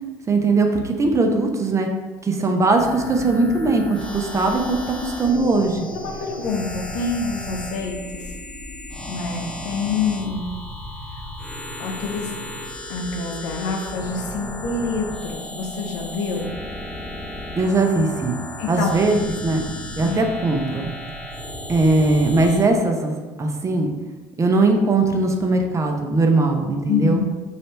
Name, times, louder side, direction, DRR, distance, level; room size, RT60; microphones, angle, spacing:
voice 1, 0.3-1.9 2.2-3.8 4.1-4.8 5.0-5.8 17.6-18.3 18.7-19.6 20.0-20.9 21.7-23.9 24.4-27.2, right 3 dB, 30° right, 3 dB, 0.7 m, -20 dB
sound 1, 2.7-22.7, left 1 dB, 10° left, 0.7 m, -34 dB
voice 2, 5.9-8.3 9.1-10.5 11.1-11.2 11.8-12.3 12.9-16.6 18.6-18.9 20.0-20.2 26.9-27.3, left 4 dB, 80° left, 1 dB, 0.7 m, -26 dB
3.3 x 2.7 x 4.3 m, 1.2 s
hypercardioid pair, 75°, 11 cm